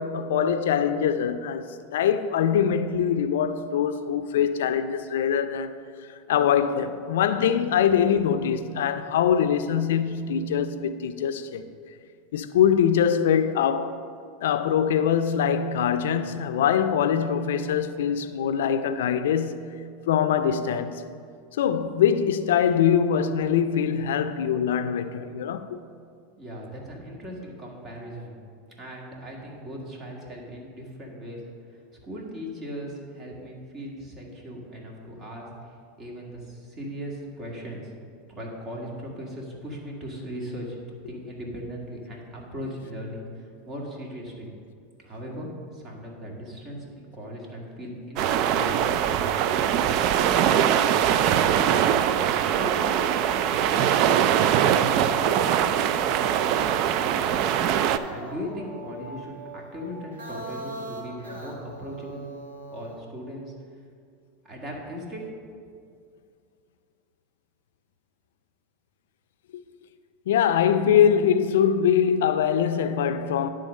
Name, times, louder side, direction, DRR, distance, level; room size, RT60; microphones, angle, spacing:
voice 1, 0.0-5.7 6.1-11.6 12.3-14.0 14.4-19.8 20.1-21.1 21.6-25.8 70.3-73.5, left 8 dB, 80° left, 0.4 m, -23 dB
voice 2, 26.4-28.4 28.8-31.4 31.7-35.5 36.0-37.9 38.3-40.8 41.0-44.5 45.0-48.9 49.4-52.0 52.5-55.2 55.6-57.3 58.1-62.3 62.7-63.5 64.4-65.3, equal, 35° right, 2.0 m, -38 dB
sound 1, 48.2-58.0, right 9 dB, 55° right, 0.4 m, -22 dB
sound 2, 57.7-63.0, right 1 dB, 90° right, 1.7 m, -40 dB
10.5 x 3.8 x 6.4 m
hypercardioid pair, 110°, 0 cm